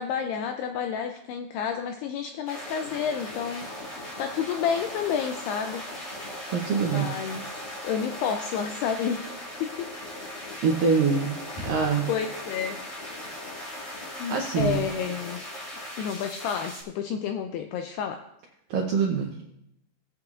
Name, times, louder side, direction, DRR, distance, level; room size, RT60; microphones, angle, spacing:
voice 1, 0.0-5.9 6.8-7.5 7.8-9.9 12.1-12.8 14.2-15.4 16.0-18.2, left 7 dB, 85° left, 6 dB, 2.3 m, -30 dB
sound 1, 2.5-16.8, left 1 dB, 40° left, 1.5 m, -38 dB
voice 2, 6.5-7.2 10.6-11.4 11.6-12.1 14.3-14.8 18.7-19.4, right 5 dB, 80° right, 0 dB, 2.0 m, -24 dB
sound 2, 11.6-12.1 14.6-15.1, equal, 60° left, 6.1 m, -37 dB
19.5 x 8.0 x 2.4 m, 0.81 s
omnidirectional pair, 5.2 m